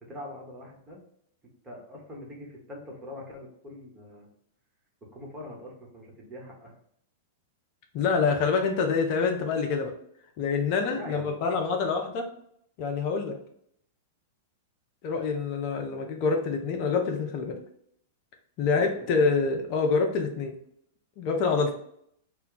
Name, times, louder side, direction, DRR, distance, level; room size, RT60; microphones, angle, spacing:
voice 1, 0.1-1.0 1.6-4.3 5.0-6.7 10.9-11.5 18.7-19.3, left 1 dB, 20° right, -2 dB, 1.1 m, -43 dB
voice 2, 7.9-9.9 10.4-12.2 12.8-13.4 15.0-17.6 18.6-20.5 21.2-21.7, left 4 dB, 50° left, 3 dB, 0.5 m, -26 dB
2.2 x 2.2 x 3.9 m, 0.70 s
hypercardioid pair, 105°, 0 cm